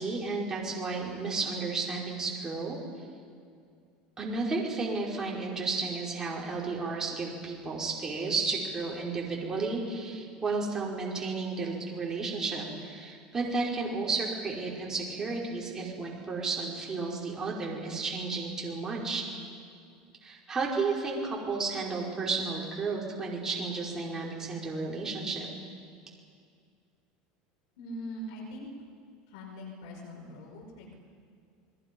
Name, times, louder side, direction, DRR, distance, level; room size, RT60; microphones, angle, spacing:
voice 1, 0.0-2.8 4.2-19.2 20.2-25.5, right 4 dB, 15° right, -3 dB, 5.2 m, -32 dB
voice 2, 27.8-28.7 29.3-30.9, equal, 80° left, 0 dB, 5.5 m, -42 dB
30.0 x 21.5 x 5.5 m, 2.2 s
supercardioid pair, 140°, 3 cm